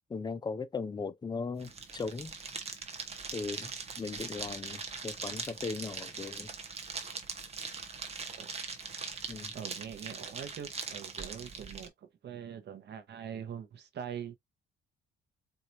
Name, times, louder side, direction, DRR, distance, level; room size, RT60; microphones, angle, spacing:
voice 1, 0.1-2.3 3.3-6.5 9.3-9.6, left 4 dB, 20° left, 0.5 m, -38 dB
sound 1, 1.6-11.9, right 5 dB, 30° right, 1.0 m, -41 dB
voice 2, 9.5-14.4, right 8 dB, 55° right, 1.1 m, -43 dB
4.5 x 2.8 x 2.6 m
cardioid pair, 105°, 21 cm